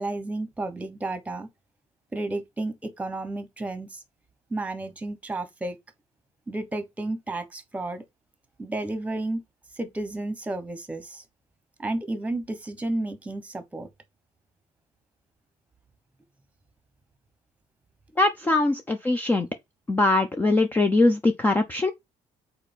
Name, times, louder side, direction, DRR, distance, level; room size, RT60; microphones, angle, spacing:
voice 1, 0.0-1.5 2.1-4.0 4.5-5.8 6.5-8.0 8.6-9.4 9.7-11.2 11.8-13.9, right 2 dB, 10° right, 1.2 m, -32 dB
voice 2, 18.2-19.5 19.9-21.9, left 2 dB, 15° left, 0.6 m, -22 dB
4.9 x 4.2 x 5.3 m
cardioid pair, 125°, 13 cm